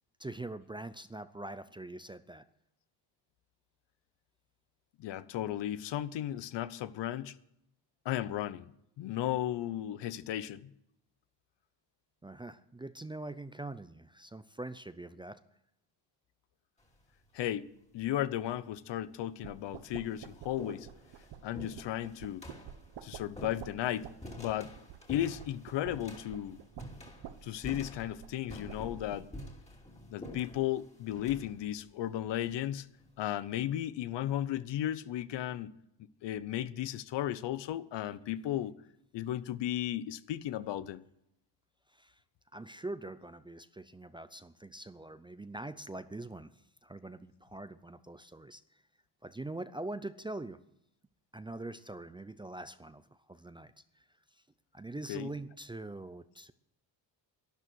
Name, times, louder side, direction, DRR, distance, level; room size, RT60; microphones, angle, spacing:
voice 1, 0.2-2.4 12.2-15.4 41.9-42.2 42.5-48.8 49.2-50.6 51.3-54.0 54.3-54.4 54.7-56.5, right 2 dB, 10° right, 0.4 m, -43 dB
voice 2, 5.0-7.4 8.0-8.7 9.0-10.7 17.3-17.7 17.9-20.9 21.4-22.4 23.0-24.1 24.4-24.7 25.1-26.6 27.4-29.3 30.1-32.9 33.2-35.8 36.2-38.7 39.1-41.0 55.1-55.3, left 12 dB, 70° left, 0.8 m, -35 dB
sound 1, 16.8-17.2 18.2-18.3 19.1-19.2 19.6-33.1, left 1 dB, 15° left, 2.6 m, -49 dB
sound 2, 19.4-29.5, right 10 dB, 65° right, 1.0 m, -50 dB
12.0 x 11.0 x 6.3 m
cardioid pair, 110°, 45 cm